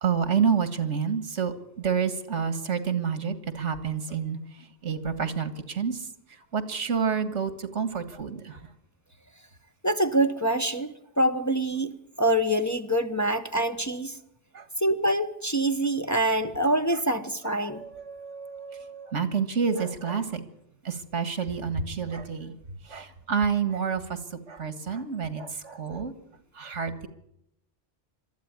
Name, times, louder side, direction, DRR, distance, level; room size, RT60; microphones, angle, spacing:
voice 1, 0.0-4.4 4.8-8.6 14.5-14.7 17.5-20.4 20.8-22.6 22.8-24.2 24.5-26.1 26.5-27.1, right 6 dB, 90° right, 12 dB, 2.0 m, -29 dB
voice 2, 9.8-14.2 14.8-17.8, right 1 dB, 15° left, 6 dB, 0.9 m, -25 dB
22.0 x 13.5 x 9.5 m, 0.78 s
omnidirectional pair, 1.2 m